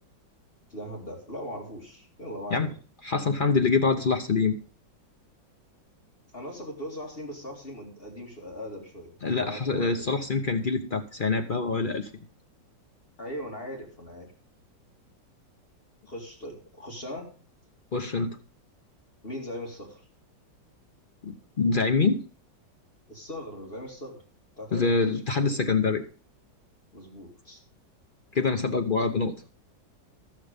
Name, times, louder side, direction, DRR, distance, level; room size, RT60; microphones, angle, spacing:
voice 1, 0.7-2.7 6.3-9.1 9.4-10.2 13.2-14.3 16.1-17.3 19.2-20.0 23.1-24.2 24.6-25.6 26.9-27.6, equal, 30° left, 0 dB, 2.6 m, -39 dB
voice 2, 3.0-4.6 9.2-12.1 17.9-18.4 21.2-22.2 24.7-26.0 28.3-29.3, left 4 dB, 55° left, 5 dB, 0.5 m, -25 dB
12.5 x 7.5 x 5.1 m, 0.38 s
omnidirectional pair, 2.0 m